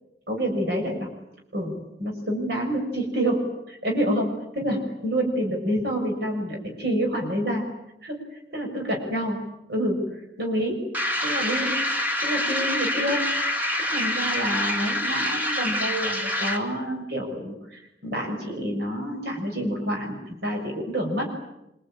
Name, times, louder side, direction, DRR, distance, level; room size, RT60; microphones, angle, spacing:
voice 1, 0.3-1.1 1.5-1.7 2.0-7.7 8.0-8.2 8.5-9.4 9.7-10.1 10.4-10.8 11.2-11.8 12.2-13.3 13.9-21.3, equal, 55° right, 1 dB, 6.4 m, -28 dB
sound 1, 10.9-16.7, left 1 dB, 10° right, 2.6 m, -26 dB
26.0 x 25.0 x 8.9 m, 0.89 s
head